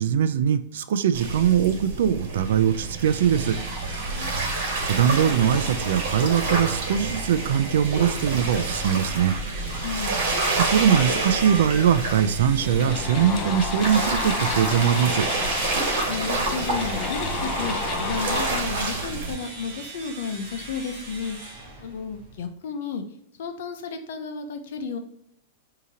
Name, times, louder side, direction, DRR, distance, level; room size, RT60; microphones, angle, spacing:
voice 1, 0.0-3.6 4.8-9.3 10.6-15.3, right 8 dB, 75° right, 12 dB, 0.4 m, -21 dB
sound 1, 1.1-19.4, right 3 dB, 55° right, 1.3 m, -28 dB
sound 2, 3.1-22.5, right 2 dB, 30° right, 1.1 m, -41 dB
voice 2, 4.1-4.5 9.8-10.2 16.0-21.4 21.8-23.0 23.4-25.0, left 5 dB, 65° left, 6 dB, 0.7 m, -32 dB
sound 3, 12.4-18.6, left 4 dB, 25° left, 0.6 m, -31 dB
4.9 x 2.8 x 2.8 m, 0.74 s
supercardioid pair, 170°, 0 cm